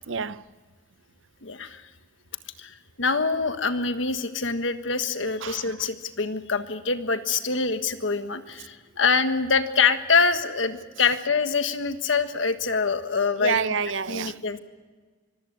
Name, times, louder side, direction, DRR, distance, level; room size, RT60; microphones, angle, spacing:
voice 1, 0.1-0.4 5.4-5.6 13.4-14.3, right 6 dB, 75° right, 0.7 m, -28 dB
voice 2, 1.4-1.8 2.6-13.6 14.1-14.6, left 5 dB, 75° left, 1.5 m, -25 dB
25.0 x 15.5 x 9.7 m
head